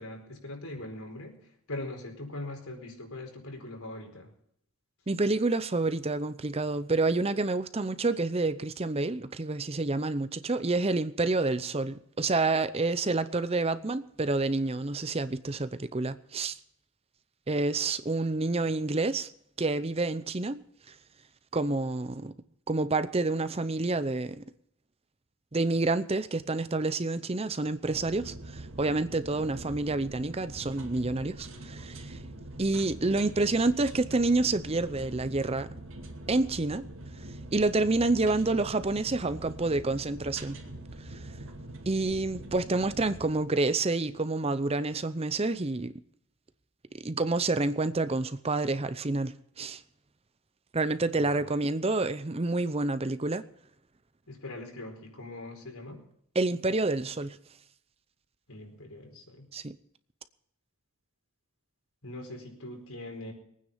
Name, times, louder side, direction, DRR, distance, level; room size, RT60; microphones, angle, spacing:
voice 1, 0.0-1.4 1.7-4.3 51.1-51.5 54.3-56.0 58.5-59.5 62.0-63.3, left 2 dB, 80° left, 4.6 m, -41 dB
voice 2, 5.1-16.5 17.5-19.3 19.6-20.6 21.5-22.3 22.7-24.4 25.5-32.2 32.6-35.7 36.3-36.9 37.5-40.6 41.1-41.2 41.9-45.9 47.0-49.8 50.7-53.4 56.3-57.4 59.5-59.8, right 2 dB, 25° right, 0.6 m, -28 dB
sound 1, 27.8-43.3, right 1 dB, 60° right, 2.4 m, -44 dB
22.5 x 9.6 x 5.6 m
head